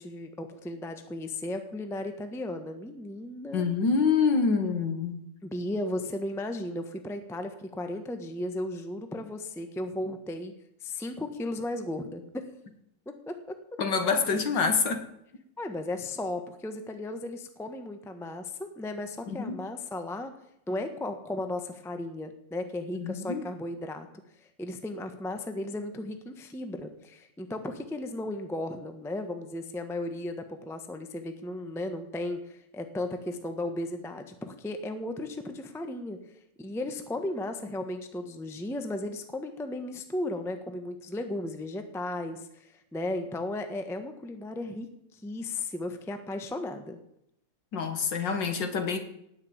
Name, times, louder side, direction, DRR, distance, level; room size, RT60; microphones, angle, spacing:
voice 1, 0.0-3.7 5.4-10.5 10.8-12.5 13.1-13.5 15.6-20.3 20.7-24.1 24.4-36.2 36.6-47.0, left 1 dB, ahead, 7 dB, 0.8 m, -35 dB
voice 2, 3.5-5.2 13.8-15.1 19.3-19.5 23.0-23.4 47.7-49.0, left 5 dB, 60° left, 8 dB, 2.0 m, -26 dB
18.0 x 6.4 x 8.9 m, 0.78 s
omnidirectional pair, 2.4 m